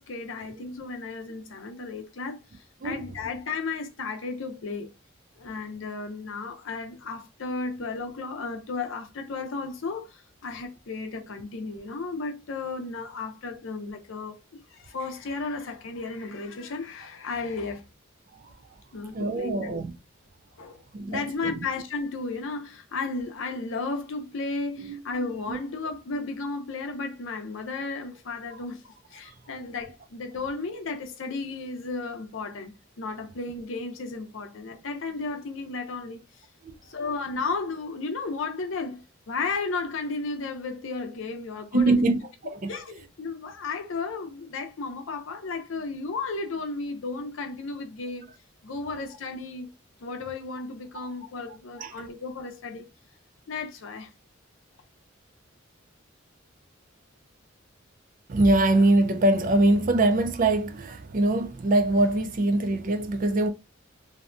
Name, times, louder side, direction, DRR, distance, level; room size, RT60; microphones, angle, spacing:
voice 1, 0.0-4.9 5.4-17.8 18.9-19.7 20.6-20.8 21.1-36.2 36.9-42.1 42.7-48.3 48.6-49.7 50.0-52.9 53.5-54.1, left 3 dB, 75° left, 0.6 m, -34 dB
voice 2, 19.1-20.0 20.9-21.6 24.8-25.0 25.5-25.6 28.5-28.6 36.6-36.7 41.7-42.2 42.5-42.8 50.9-51.1 51.8-52.1 58.3-63.5, right 2 dB, 40° right, 0.4 m, -23 dB
2.7 x 2.1 x 2.5 m
head